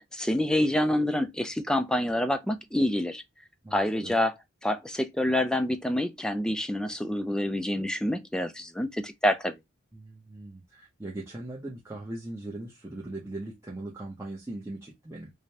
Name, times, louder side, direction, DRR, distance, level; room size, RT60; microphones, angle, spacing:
voice 1, 0.0-3.2 3.7-4.3 4.6-9.5, left 1 dB, 5° left, 0.4 m, -27 dB
voice 2, 3.6-4.2 9.9-15.3, right 2 dB, 15° right, 0.7 m, -40 dB
5.0 x 2.2 x 2.8 m
head